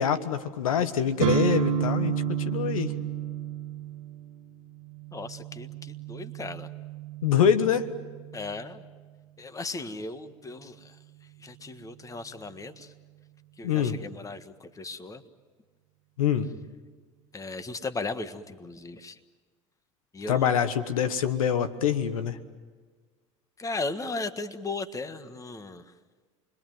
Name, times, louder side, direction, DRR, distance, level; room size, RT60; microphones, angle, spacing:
voice 1, 0.0-2.1 2.5-2.9 7.2-7.9 13.6-14.0 16.2-16.5 20.3-22.4, left 8 dB, 90° left, 12 dB, 1.3 m, -25 dB
sound 1, 1.2-9.0, right 8 dB, 80° right, 1.6 m, -31 dB
voice 2, 5.1-6.7 8.3-8.8 9.4-10.9 11.4-12.9 13.6-15.2 17.3-19.2 20.1-20.5 23.6-25.8, left 3 dB, 20° left, 10 dB, 1.6 m, -36 dB
29.0 x 21.5 x 9.3 m, 1.5 s
hypercardioid pair, 90°, 17 cm